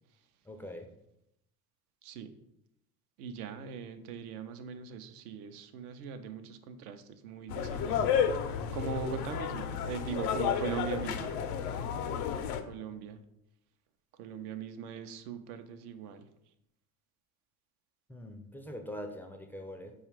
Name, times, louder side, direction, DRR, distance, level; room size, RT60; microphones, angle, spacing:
voice 1, 0.4-0.9 18.1-19.9, left 1 dB, 5° left, 5 dB, 0.3 m, -43 dB
voice 2, 2.0-2.4 3.2-8.1 8.7-11.4 11.7-11.9 12.7-13.2 14.2-16.3, right 7 dB, 75° right, 9 dB, 0.6 m, -40 dB
sound 1, 7.5-12.6, left 7 dB, 80° left, 0.5 m, -32 dB
4.8 x 2.4 x 4.5 m, 0.82 s
hypercardioid pair, 70°, 45 cm